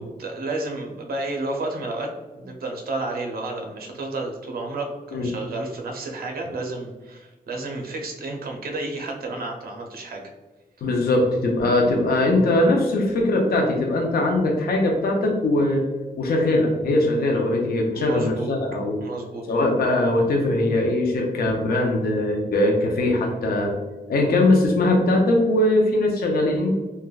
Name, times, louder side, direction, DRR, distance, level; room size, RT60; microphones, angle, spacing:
voice 1, 0.0-10.2 10.8-10.9 17.9-18.5 19.0-19.4 21.5-21.6, right 2 dB, 75° right, 1 dB, 0.5 m, -31 dB
voice 2, 10.8-15.8 16.2-19.0 19.5-23.7 24.1-26.7, left 1 dB, 75° left, 1 dB, 0.5 m, -21 dB
3.2 x 2.1 x 2.3 m, 1.2 s
wide cardioid pair, 120°, 16 cm